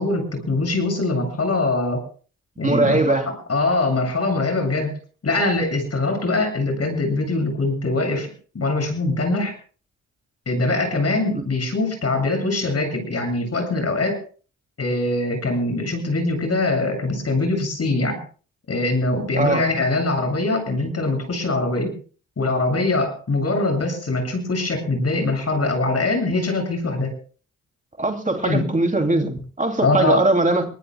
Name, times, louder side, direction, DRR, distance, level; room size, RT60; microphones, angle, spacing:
voice 1, 0.0-2.0 2.6-4.9 5.2-8.3 8.5-9.5 10.5-14.2 14.8-18.2 18.7-21.9 22.4-27.1 28.4-28.7 29.8-30.2, left 2 dB, 45° left, 7.8 m, -22 dB
voice 2, 2.6-3.3 11.3-11.4 19.4-19.7 28.0-30.7, right 2 dB, 25° right, 2.8 m, -20 dB
24.0 x 20.0 x 2.3 m
supercardioid pair, 50°, 34 cm